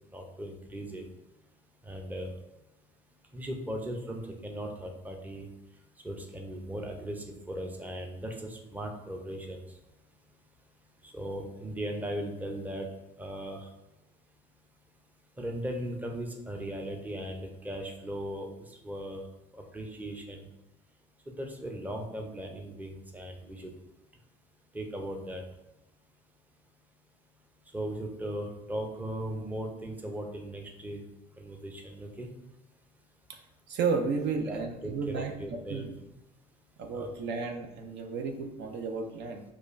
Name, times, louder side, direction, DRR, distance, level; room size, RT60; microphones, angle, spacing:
voice 1, 0.1-1.0 1.9-2.3 3.3-5.5 6.0-9.6 11.1-12.9 13.2-13.6 15.4-18.5 18.8-19.2 19.7-20.4 21.4-23.7 24.7-25.4 27.7-31.0 31.4-32.3 34.5-35.9 36.9-37.1, right 1 dB, 10° right, 2 dB, 0.6 m, -38 dB
voice 2, 33.7-35.9 36.8-39.4, right 5 dB, 55° right, 4 dB, 0.5 m, -33 dB
4.7 x 2.4 x 2.5 m, 0.91 s
supercardioid pair, 80°, 21 cm